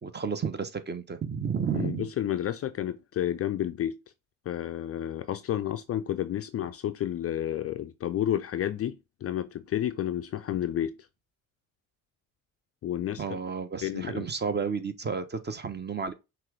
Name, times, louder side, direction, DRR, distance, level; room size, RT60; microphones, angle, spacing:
voice 1, 0.0-2.1 13.2-16.1, right 6 dB, 25° right, 0.8 m, -32 dB
voice 2, 1.7-4.0 4.5-11.0 12.8-13.4 13.8-14.3, left 11 dB, 35° left, 0.4 m, -31 dB
5.7 x 2.5 x 3.2 m
hypercardioid pair, 50°, 43 cm